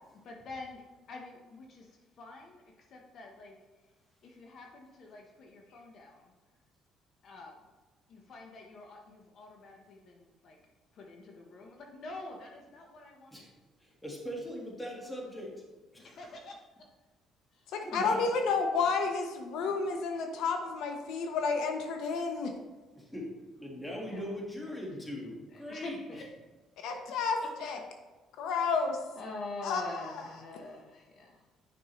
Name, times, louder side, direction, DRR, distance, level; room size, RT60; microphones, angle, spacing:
voice 1, 0.2-0.8 1.1-2.6 2.9-3.6 4.2-6.3 7.2-7.7 8.1-10.6 10.9-13.4 16.0-16.6 17.5-18.3 18.8-19.0 24.1-24.3 24.6-24.8 25.5-26.2 26.9-27.0 27.4-27.5 29.2-31.4, left 2 dB, 50° left, 1 dB, 0.9 m, -46 dB
voice 2, 13.8-15.5 15.9-16.1 17.8-18.3 22.9-23.3 23.6-26.2, equal, 10° left, -2 dB, 1.6 m, -40 dB
voice 3, 17.7-22.5 26.8-27.8 28.4-29.0 29.6-30.2, left 4 dB, 80° left, 4 dB, 0.8 m, -31 dB
9.2 x 5.4 x 3.1 m, 1.2 s
cardioid pair, 145°, 0 cm